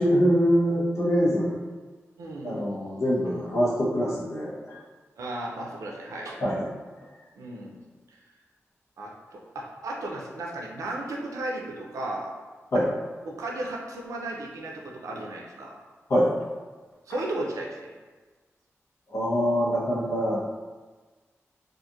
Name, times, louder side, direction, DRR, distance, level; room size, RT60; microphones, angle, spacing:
voice 1, 0.0-1.6 2.4-4.8 6.4-6.7 12.7-12.9 16.1-16.3 19.1-20.4, equal, 65° left, -7 dB, 0.9 m, -24 dB
voice 2, 2.2-2.7 5.2-6.4 7.3-7.8 8.1-8.2 9.0-12.3 12.7-12.8 13.3-15.8 17.1-17.9, right 1 dB, 90° right, -1 dB, 0.4 m, -35 dB
2.8 x 2.5 x 2.4 m, 1.3 s
cardioid pair, 45°, 5 cm